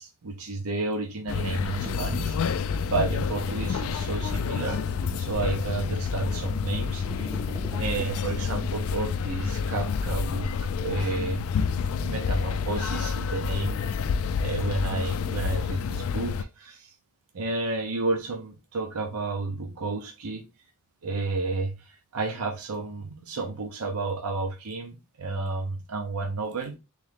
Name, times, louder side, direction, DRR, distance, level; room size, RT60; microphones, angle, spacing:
voice 1, 0.0-4.8 5.2-7.3 7.8-11.4 12.0-13.8 14.4-16.9 17.3-20.4 21.0-26.8, right 3 dB, 80° right, 0.7 m, -31 dB
sound 1, 1.3-16.4, left 6 dB, 70° left, 0.3 m, -29 dB
sound 2, 1.8-8.6, right 2 dB, 20° right, 0.5 m, -42 dB
3.7 x 3.2 x 3.5 m
head